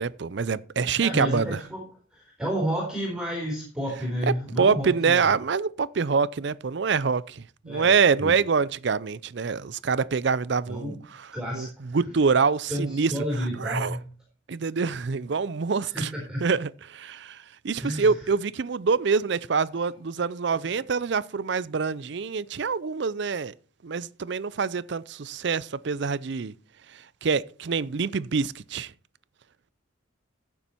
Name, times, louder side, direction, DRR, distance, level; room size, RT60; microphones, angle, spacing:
voice 1, 0.0-1.6 4.2-11.3 11.5-14.0 14.5-16.1 16.4-23.5 23.8-26.5 26.9-28.9, right 5 dB, 55° right, 0.5 m, -26 dB
voice 2, 1.0-1.8 2.1-5.3 7.7-7.9 8.2-8.3 10.7-11.0 11.3-12.0 12.7-14.0 15.9-16.4 17.8-18.1, equal, 5° right, 4.1 m, -30 dB
15.0 x 7.1 x 4.4 m
head